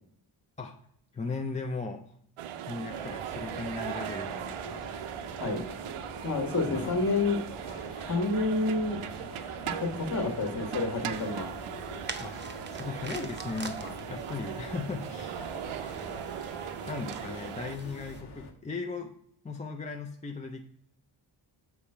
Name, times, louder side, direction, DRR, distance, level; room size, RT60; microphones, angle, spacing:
voice 1, 1.1-2.2 2.7-5.0 6.6-7.2 12.2-15.5 16.9-19.1 19.4-20.6, left 4 dB, 15° left, 2 dB, 0.4 m, -37 dB
Cricket (Sport), 2.4-17.8, right 10 dB, 90° right, 0.6 m, -39 dB
sound 1, 2.9-18.5, left 2 dB, 55° left, 1.3 m, -46 dB
voice 2, 6.2-7.4 8.0-9.1 9.6-11.5, left 3 dB, 35° left, 3 dB, 1.4 m, -29 dB
sound 2, 11.1-18.2, right 4 dB, 25° right, 0.6 m, -45 dB
7.1 x 4.9 x 4.3 m, 0.67 s
wide cardioid pair, 140°, 49 cm